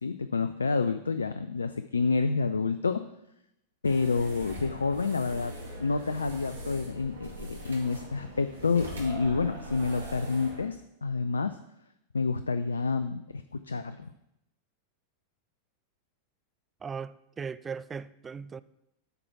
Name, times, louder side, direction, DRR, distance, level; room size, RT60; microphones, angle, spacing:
voice 1, 0.0-3.0 3.8-5.5 5.8-11.6 12.1-14.1, left 4 dB, 75° left, 0.3 m, -29 dB
sound 1, 3.8-10.6, right 1 dB, 70° right, 2.0 m, -41 dB
voice 2, 16.8-18.6, right 6 dB, 20° right, 0.3 m, -38 dB
8.6 x 4.6 x 5.8 m
figure-of-eight pair, 90°, 0 cm